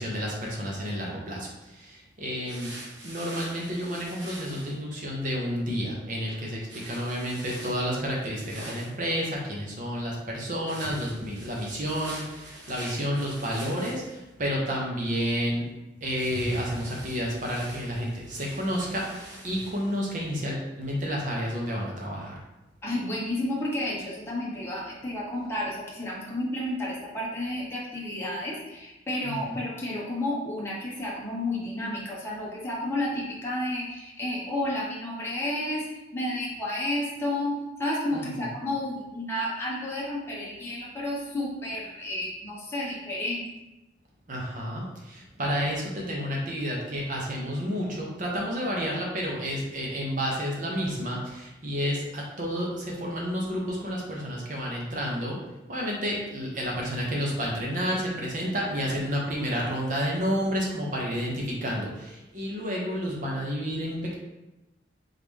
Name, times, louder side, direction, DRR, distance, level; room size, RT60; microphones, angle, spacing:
voice 1, 0.0-2.7 3.0-15.6 16.0-22.4 29.2-29.6 38.1-38.5 44.3-55.4 55.7-64.1, equal, 45° right, -2 dB, 1.0 m, -30 dB
sound 1, 2.4-4.7 6.7-9.0 10.6-14.3 16.1-19.9, right 1 dB, 85° right, 1.1 m, -45 dB
voice 2, 22.8-35.9 36.1-43.5, left 1 dB, 15° left, -6 dB, 0.9 m, -31 dB
3.7 x 3.2 x 3.6 m, 0.99 s
head